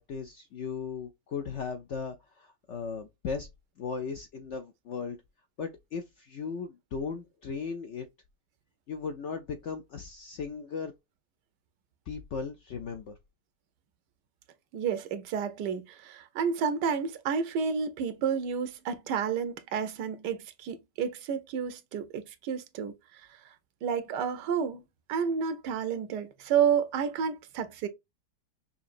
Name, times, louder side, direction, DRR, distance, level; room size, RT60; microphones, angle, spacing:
voice 1, 0.0-3.5 3.8-5.2 5.6-8.1 8.9-10.9 12.1-13.2, left 5 dB, 70° left, 0.7 m, -37 dB
voice 2, 14.7-23.2 23.8-24.8 25.1-27.9, right 7 dB, 85° right, 1.3 m, -30 dB
5.8 x 2.7 x 2.5 m
omnidirectional pair, 1.8 m